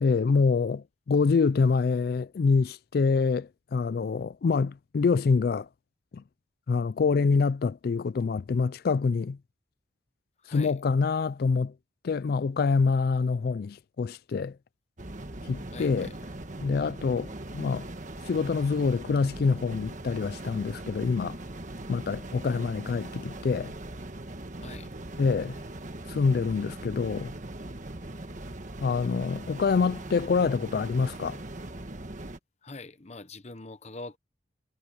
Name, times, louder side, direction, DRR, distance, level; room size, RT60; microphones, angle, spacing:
voice 1, 0.0-5.7 6.1-6.2 6.7-9.4 10.5-11.7 12.0-14.5 15.5-16.1 16.6-17.9 18.3-21.4 21.9-23.7 25.2-25.6 26.1-27.3 28.8-31.4, left 4 dB, 55° left, 0.3 m, -26 dB
voice 2, 10.4-10.8 15.7-16.2 24.6-24.9 32.6-34.2, left 2 dB, 35° left, 1.0 m, -43 dB
sound 1, 15.0-32.4, right 1 dB, 40° right, 1.5 m, -40 dB
head